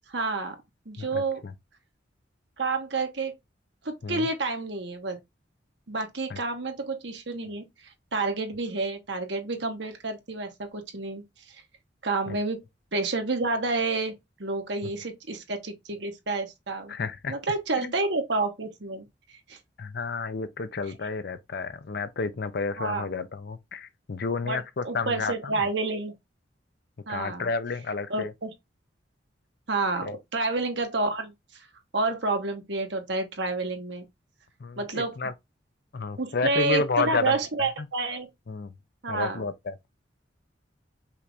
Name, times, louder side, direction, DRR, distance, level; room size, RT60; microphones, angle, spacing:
voice 1, 0.1-0.5 0.9-1.4 2.6-3.3 3.8-5.2 5.9-7.6 8.1-11.2 12.0-12.6 12.9-14.1 14.4-16.9 17.3-19.1 19.5-19.6 22.8-23.0 24.4-26.1 27.1-27.5 28.1-28.5 29.7-31.3 31.9-34.0 34.8-35.2 36.2-38.3 39.0-39.4, right 3 dB, 70° right, 1.2 m, -29 dB
voice 2, 1.0-1.5 4.0-4.3 6.3-6.4 12.3-12.4 14.8-14.9 16.9-17.3 17.8-17.9 19.8-25.7 27.1-28.3 30.0-30.2 34.6-35.3 35.9-37.9 38.5-38.7 39.1-39.9, left 4 dB, 60° left, 0.6 m, -31 dB
5.6 x 2.6 x 3.3 m
head